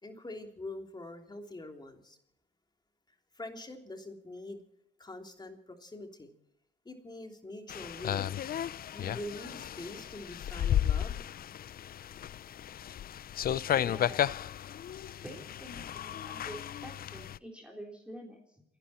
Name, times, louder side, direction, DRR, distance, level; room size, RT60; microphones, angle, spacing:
voice 1, 0.0-2.2 3.3-4.6 5.0-6.3 6.8-8.6 8.9-11.2, left 1 dB, 20° left, 4 dB, 3.2 m, -44 dB
sound 1, 7.7-17.4, left 10 dB, 50° left, 0.5 m, -34 dB
voice 2, 13.7-14.3 15.0-18.6, equal, 5° right, -1 dB, 3.7 m, -47 dB
29.0 x 11.5 x 4.3 m, 0.81 s
cardioid pair, 90°, 20 cm